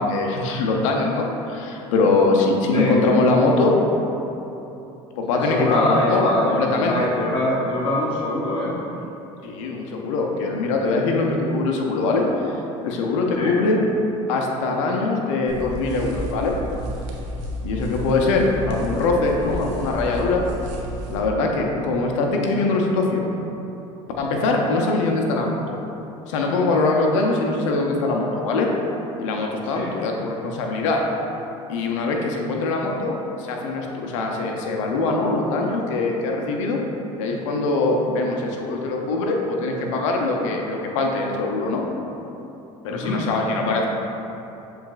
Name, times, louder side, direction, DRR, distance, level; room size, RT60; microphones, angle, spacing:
voice 1, 0.0-3.7 5.2-6.9 9.4-12.6 12.8-13.8 14.3-16.5 17.6-20.4 21.1-23.3 24.2-25.8 26.3-28.7 29.2-31.0 31.7-36.8 37.2-41.8 42.8-43.9, left 3 dB, 85° left, 0 dB, 0.6 m, -22 dB
voice 2, 5.3-8.8 13.3-13.5 29.7-29.9 42.9-43.2, left 1 dB, 35° left, -7 dB, 1.0 m, -23 dB
sound 1, 15.5-21.2, equal, 80° right, 0.7 m, -32 dB
7.0 x 3.2 x 2.4 m, 2.9 s
supercardioid pair, 85°, 16 cm